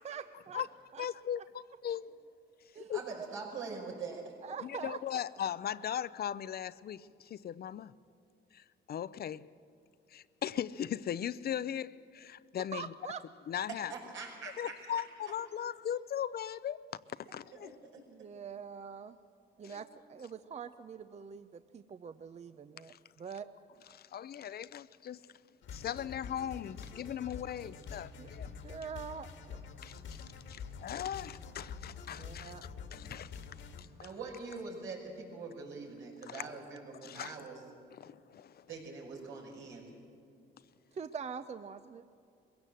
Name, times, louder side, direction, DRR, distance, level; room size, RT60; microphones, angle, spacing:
voice 1, 0.0-0.6 0.9-1.1 2.7-3.0 4.4-5.2 12.7-13.2 18.1-19.2 19.6-23.5 28.2-28.3 28.6-29.6 32.2-32.6 40.9-42.0, right 6 dB, 35° right, 0.6 m, -44 dB
voice 2, 1.0-1.4 1.8-2.1 2.9-3.0 4.6-7.9 8.5-9.4 10.1-12.9 13.5-13.9 14.6-16.8 17.2-17.8 19.6-19.8 22.9-23.0 23.9-25.2 25.7-28.6 29.8-32.5 32.9-33.4 33.8-34.1 36.3-36.4 37.0-37.3 37.9-38.7, left 9 dB, 50° left, 0.5 m, -38 dB
voice 3, 2.7-4.5 13.9-15.0 15.6-15.7 17.5-18.5 19.6-19.9 34.0-37.6 38.7-40.0, right 4 dB, 80° right, 5.8 m, -44 dB
sound 1, 25.6-33.8, left 6 dB, 75° left, 1.8 m, -47 dB
21.5 x 16.5 x 7.7 m
cardioid pair, 90°, 20 cm